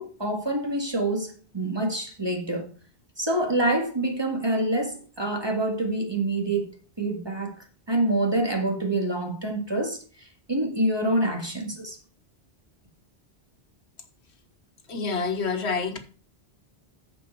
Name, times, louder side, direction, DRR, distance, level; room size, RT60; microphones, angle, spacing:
voice 1, 0.0-2.7 3.2-12.0, right 1 dB, 25° right, 1.8 m, -27 dB
voice 2, 14.9-16.0, left 5 dB, 75° left, 1.5 m, -27 dB
14.0 x 5.1 x 4.5 m
omnidirectional pair, 1.1 m